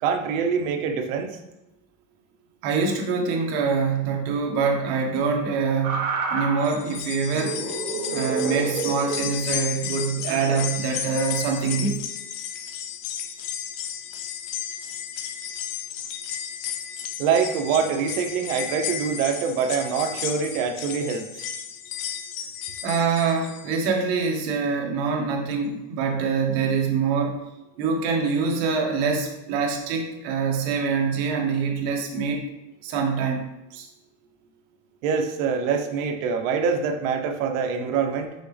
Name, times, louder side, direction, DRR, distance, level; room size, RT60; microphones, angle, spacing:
voice 1, 0.0-1.3 17.2-21.5 35.0-38.3, right 6 dB, 85° right, 5 dB, 1.0 m, -25 dB
voice 2, 2.6-7.6 8.1-12.0 22.8-27.4 27.8-32.5 32.8-33.4 33.7-33.9, right 5 dB, 65° right, 1 dB, 1.6 m, -25 dB
sound 1, 5.8-6.7 7.2-9.4 10.6-10.8, right 5 dB, 45° right, 1.4 m, -28 dB
sound 2, 6.6-23.9 24.3-24.4 25.5-25.6, left 9 dB, 65° left, 0.8 m, -33 dB
6.2 x 5.9 x 3.4 m, 0.95 s
cardioid pair, 140°, 39 cm